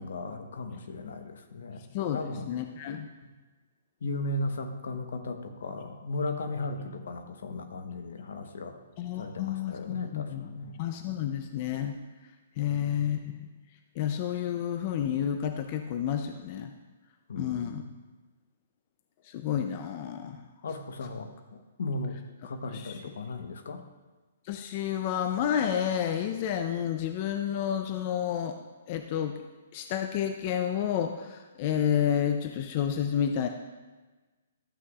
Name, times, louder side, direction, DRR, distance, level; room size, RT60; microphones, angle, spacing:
voice 1, 0.0-2.5 4.0-8.8 9.2-10.8 12.7-13.3 17.3-17.9 20.6-22.2 22.4-23.8, left 2 dB, 75° left, 7 dB, 1.0 m, -36 dB
voice 2, 1.9-3.1 9.0-10.5 10.8-12.0 12.6-13.5 14.0-16.7 17.4-17.8 19.3-20.4 22.7-23.0 24.5-28.6 28.9-29.4 29.7-33.5, left 9 dB, 35° left, 7 dB, 0.5 m, -30 dB
12.5 x 8.0 x 2.4 m, 1.2 s
hypercardioid pair, 155°, 0 cm